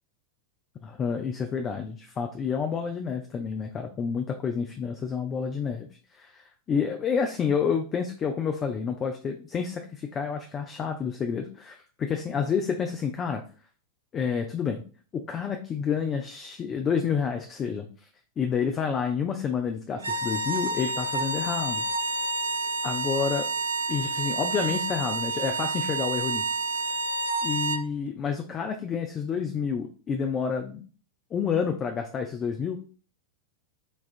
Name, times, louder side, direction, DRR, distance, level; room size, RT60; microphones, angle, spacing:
voice 1, 0.8-5.9 6.1-13.4 14.1-14.8 15.1-17.9 18.4-21.8 22.8-23.5 23.9-26.6 27.4-30.8 31.3-32.8, left 6 dB, 25° left, 5 dB, 0.4 m, -29 dB
sound 1, 20.0-27.9, right 3 dB, 70° right, 0.3 m, -29 dB
5.2 x 2.4 x 2.4 m, 0.40 s
figure-of-eight pair, 90°, 0 cm